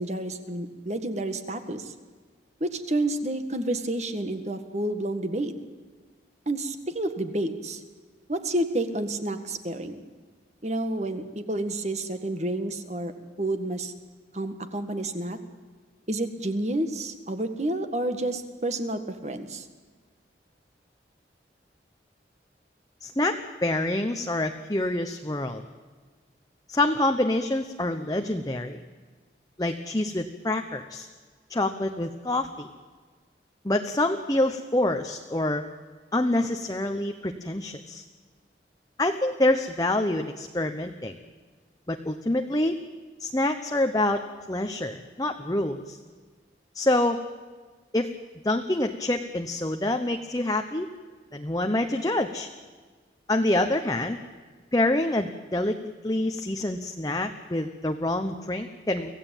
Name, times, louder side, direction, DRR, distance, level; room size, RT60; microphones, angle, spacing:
voice 1, 0.0-1.9 2.6-5.5 6.5-7.8 8.3-10.0 10.6-13.1 13.4-13.9 14.3-15.4 16.1-19.7, right 1 dB, 40° right, 8 dB, 1.8 m, -29 dB
voice 2, 23.0-25.6 26.7-28.8 29.6-31.1 31.5-32.7 33.6-35.6 36.1-38.0 39.0-41.1 41.9-42.8 43.2-44.2 44.5-46.0 46.7-47.2 47.9-48.1 48.4-50.9 51.3-52.5 53.3-54.2 54.7-55.8 56.0-59.1, left 1 dB, 20° left, 5 dB, 1.0 m, -26 dB
25.5 x 16.0 x 9.1 m, 1.5 s
head